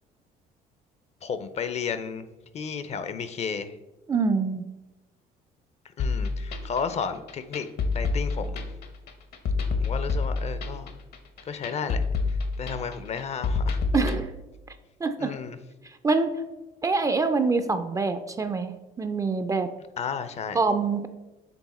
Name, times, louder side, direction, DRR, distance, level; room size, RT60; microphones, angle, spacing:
voice 1, 1.2-2.3 2.5-3.7 6.0-7.7 7.9-8.6 9.8-10.9 11.5-13.8 15.2-15.6 20.0-20.6, left 6 dB, 40° left, 12 dB, 0.5 m, -33 dB
voice 2, 4.1-4.7 13.9-14.3 15.0-15.3 15.8-16.4 16.8-19.7 20.5-21.1, right 4 dB, 20° right, 9 dB, 0.3 m, -25 dB
sound 1, 6.0-14.2, left 4 dB, 65° left, 0.8 m, -28 dB
7.0 x 3.5 x 4.1 m, 1.1 s
cardioid pair, 110°, 17 cm